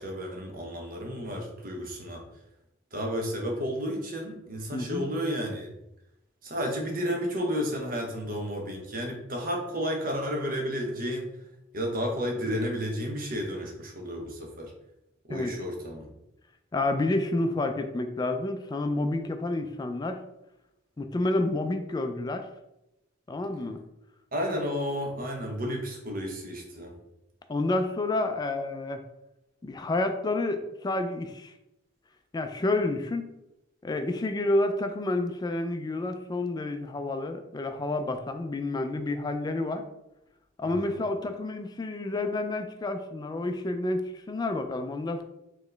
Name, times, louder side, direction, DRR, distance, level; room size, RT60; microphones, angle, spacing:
voice 1, 0.0-2.2 2.9-5.7 6.4-11.3 11.7-14.7 15.3-16.1 24.3-27.0 40.6-40.9, equal, 50° right, 1 dB, 0.9 m, -32 dB
voice 2, 4.7-5.1 15.3-15.5 16.7-20.2 21.0-22.5 23.3-23.8 27.5-29.0 29.6-31.5 32.3-33.3 33.8-39.8 40.6-45.2, left 2 dB, 20° left, 7 dB, 0.3 m, -29 dB
4.4 x 3.0 x 3.3 m, 0.88 s
head